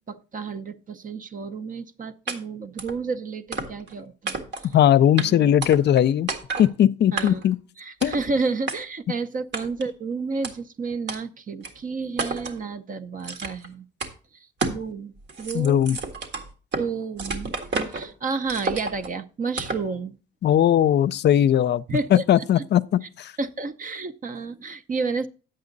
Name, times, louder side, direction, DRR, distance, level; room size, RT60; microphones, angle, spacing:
voice 1, 0.0-4.7 5.2-5.5 7.1-7.4 7.8-13.9 14.3-15.9 16.8-20.1 21.9-22.4 23.4-25.3, right 4 dB, 45° right, 0.8 m, -31 dB
sound 1, 2.3-2.4 2.8-3.0 3.5-3.9 4.3-4.7 5.2-5.3 5.6-6.0 6.3-6.7 7.2-7.5 8.0-8.3 8.7-8.8 9.5-9.9 10.4-10.5 11.1-11.2 11.6-11.7 12.2-12.6 13.2-13.7 14.0-14.1 14.6-14.9 15.2-16.9 17.2-18.1 18.5-19.1 19.6-19.9, right 3 dB, 60° right, 1.8 m, -30 dB
voice 2, 4.7-6.3 6.6-7.6 8.0-8.2 15.5-16.0 20.4-21.8 22.1-23.3, left 10 dB, 60° left, 0.5 m, -19 dB
9.5 x 7.8 x 3.9 m
cardioid pair, 90°, 20 cm